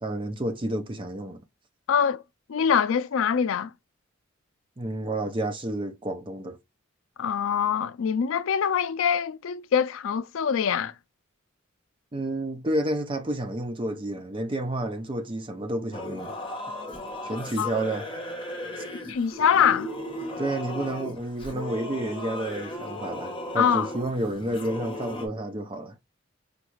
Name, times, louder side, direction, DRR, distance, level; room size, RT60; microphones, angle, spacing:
voice 1, 0.0-1.4 4.8-6.6 12.1-16.3 17.2-18.0 18.8-18.9 20.4-26.0, right 1 dB, 25° right, 0.5 m, -30 dB
voice 2, 1.9-2.2 2.5-3.7 7.2-10.9 17.6-17.7 19.1-19.9 23.6-23.9, left 7 dB, 75° left, 0.4 m, -24 dB
Singing / Musical instrument, 15.9-25.3, left 1 dB, 25° left, 1.0 m, -36 dB
5.0 x 2.4 x 3.0 m
head